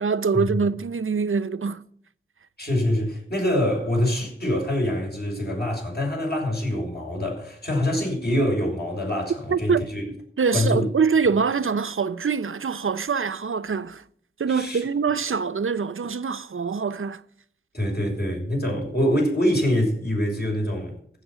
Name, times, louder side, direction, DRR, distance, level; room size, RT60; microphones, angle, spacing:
voice 1, 0.0-1.9 9.5-9.8 10.4-14.0 14.4-17.2, right 5 dB, 85° right, 0.7 m, -24 dB
voice 2, 2.6-10.0 10.5-10.9 14.5-14.8 17.7-21.0, left 1 dB, 50° left, 6.3 m, -25 dB
15.0 x 6.5 x 8.8 m
wide cardioid pair, 55°, 21 cm